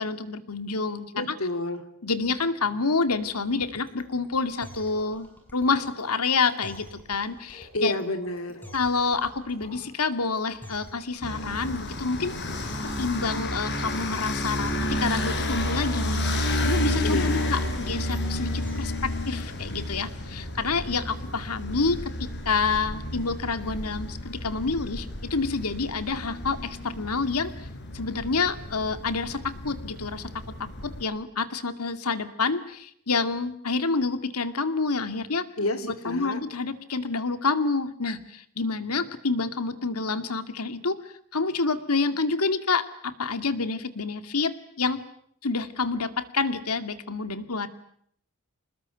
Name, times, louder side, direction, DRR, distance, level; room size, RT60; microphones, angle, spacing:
voice 1, 0.0-1.4 2.0-7.9 8.7-12.3 13.0-16.3 16.6-27.7 27.9-30.3 30.8-35.5 35.8-45.0 45.4-47.7, left 4 dB, 85° left, 10 dB, 2.3 m, -28 dB
voice 2, 1.1-1.8 7.7-8.6 17.0-17.5 35.6-36.4, left 1 dB, 65° left, 8 dB, 3.2 m, -29 dB
sound 1, 3.5-19.1, equal, 10° left, 7.3 m, -48 dB
sound 2, 4.4-5.2 5.6-7.8 8.2-10.1 10.3-10.4 10.8-11.5 11.9-12.7, left 2 dB, 30° left, 7.3 m, -52 dB
sound 3, 11.2-31.0, left 1 dB, 50° left, 5.3 m, -31 dB
27.0 x 21.0 x 9.2 m, 0.67 s
head